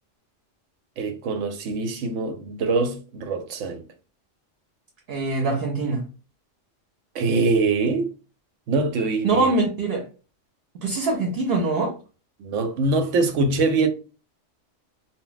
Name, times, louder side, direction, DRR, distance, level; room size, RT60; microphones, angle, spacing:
voice 1, 1.0-3.8 7.1-8.1 8.7-9.5 12.4-13.9, right 3 dB, 85° right, 0.9 m, -23 dB
voice 2, 5.1-6.0 9.2-10.0 10.7-11.9, right 3 dB, 60° right, 0.7 m, -23 dB
2.1 x 2.1 x 3.8 m
omnidirectional pair, 1.3 m